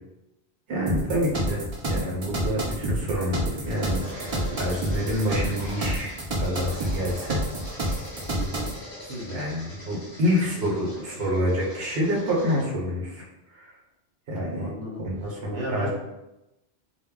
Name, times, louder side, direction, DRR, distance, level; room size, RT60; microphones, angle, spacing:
voice 1, 0.7-7.4 9.3-13.7 14.3-14.7 15.0-15.9, equal, 65° right, -3 dB, 1.0 m, -28 dB
sound 1, 0.9-8.8, right 1 dB, 50° right, 0.3 m, -29 dB
sound 2, 3.0-12.6, equal, 25° left, 0.6 m, -42 dB
voice 2, 8.3-8.7 9.0-9.4 14.6-15.0 15.5-15.9, equal, 85° right, -3 dB, 1.0 m, -34 dB
2.1 x 2.1 x 3.6 m, 0.94 s
omnidirectional pair, 1.1 m